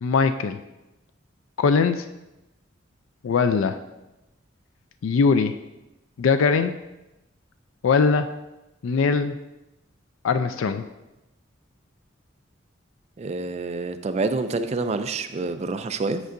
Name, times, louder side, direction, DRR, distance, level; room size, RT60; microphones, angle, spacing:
voice 1, 0.0-0.6 1.6-2.0 3.2-3.8 5.0-5.5 6.2-6.7 7.8-8.3 8.8-9.3 10.2-10.8, left 5 dB, 85° left, 10 dB, 0.4 m, -21 dB
voice 2, 13.2-16.2, right 3 dB, 35° right, 9 dB, 0.3 m, -27 dB
8.0 x 5.4 x 2.5 m, 0.97 s
head